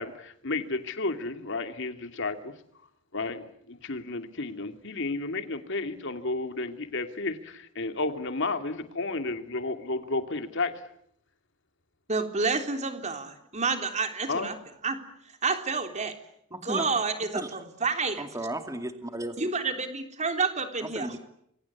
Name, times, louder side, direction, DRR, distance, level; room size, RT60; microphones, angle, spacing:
voice 1, 0.0-2.5 3.1-10.7 14.3-14.5, left 3 dB, 60° left, 8 dB, 2.6 m, -32 dB
voice 2, 12.1-14.6 14.8-15.0 15.4-16.2 16.5-18.2 19.4-21.2, right 4 dB, 35° right, 6 dB, 3.5 m, -29 dB
voice 3, 16.5-16.9 18.2-19.4 20.9-21.2, right 1 dB, 15° right, 7 dB, 2.4 m, -34 dB
28.0 x 24.0 x 8.5 m, 0.74 s
head